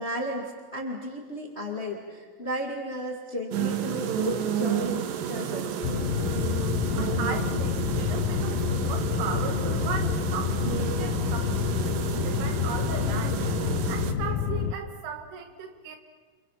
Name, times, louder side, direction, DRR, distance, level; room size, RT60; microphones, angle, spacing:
voice 1, 0.0-5.7, equal, 45° left, 0 dB, 0.8 m, -34 dB
sound 1, 3.5-14.1, right 8 dB, 70° right, 2.1 m, -31 dB
sound 2, 5.8-14.7, left 8 dB, 75° left, 2.3 m, -28 dB
voice 2, 7.0-13.4 13.9-16.0, right 6 dB, 90° right, 4 dB, 4.7 m, -37 dB
29.0 x 27.5 x 5.8 m, 1.5 s
omnidirectional pair, 5.4 m